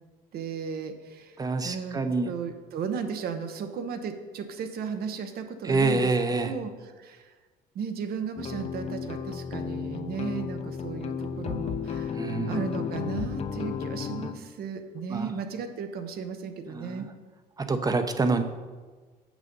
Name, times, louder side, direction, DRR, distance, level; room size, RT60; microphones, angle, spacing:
voice 1, 0.3-1.4 1.6-2.0 2.2-6.1 6.4-7.3 7.7-17.1, right 6 dB, 65° right, 8 dB, 0.9 m, -35 dB
voice 2, 1.4-2.3 5.6-6.5 12.2-12.6 15.1-15.4 16.7-17.1 17.6-18.4, right 3 dB, 20° right, 8 dB, 0.6 m, -26 dB
sound 1, 8.4-14.3, left 6 dB, 40° left, 0.5 m, -33 dB
6.5 x 6.3 x 5.3 m, 1.4 s
cardioid pair, 110°, 17 cm